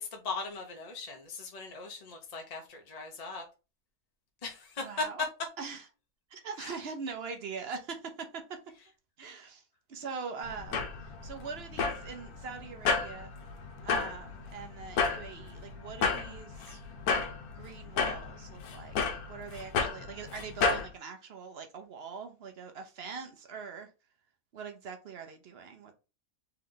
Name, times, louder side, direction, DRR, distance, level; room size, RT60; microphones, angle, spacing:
voice 1, 0.0-3.4 4.4-5.1 6.6-6.7, left 3 dB, 35° left, 0.7 m, -39 dB
voice 2, 4.8-5.3 5.6-5.9 6.3-8.6 9.2-9.6 9.9-10.9 11.2-13.3 13.8-16.8 17.5-18.9 19.3-23.9 24.5-25.9, right 5 dB, 55° right, 0.8 m, -42 dB
sound 1, 10.4-20.9, left 4 dB, 85° left, 1.2 m, -33 dB
3.5 x 3.2 x 3.8 m
omnidirectional pair, 1.5 m